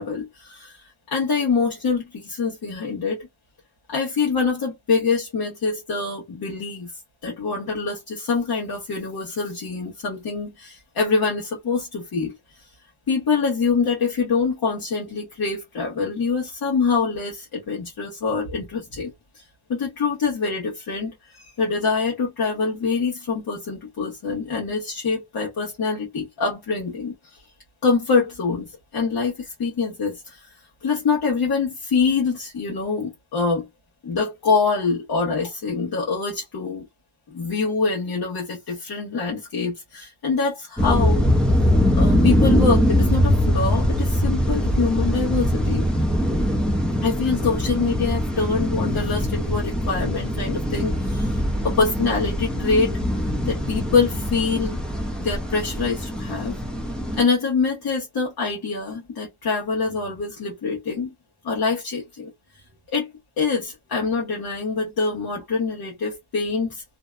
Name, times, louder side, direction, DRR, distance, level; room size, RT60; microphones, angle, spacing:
voice 1, 0.0-3.3 3.9-6.9 7.2-12.3 13.1-19.4 19.7-27.4 27.8-30.5 30.8-33.7 34.0-36.8 37.3-41.2 41.6-41.7 41.9-45.9 47.0-53.0 53.5-54.8 55.2-56.5 57.1-61.1 61.4-62.3 62.9-63.1 63.4-66.8, left 4 dB, 65° left, 1.0 m, -25 dB
sound 1, 40.8-57.2, equal, ahead, 0.5 m, -22 dB
2.7 x 2.1 x 2.3 m
wide cardioid pair, 150°, 40 cm